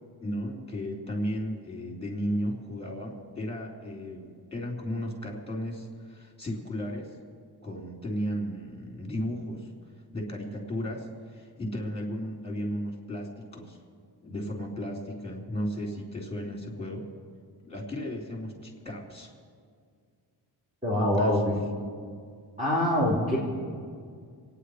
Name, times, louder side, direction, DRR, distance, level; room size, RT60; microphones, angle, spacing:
voice 1, 0.2-7.1 7.6-9.7 10.1-13.8 14.2-17.1 17.6-19.3 20.9-21.4, equal, 15° left, 0 dB, 3.8 m, -34 dB
voice 2, 20.8-21.6 22.6-23.4, left 1 dB, 15° right, -6 dB, 3.3 m, -24 dB
27.5 x 9.7 x 5.0 m, 2.1 s
cardioid pair, 100°, 41 cm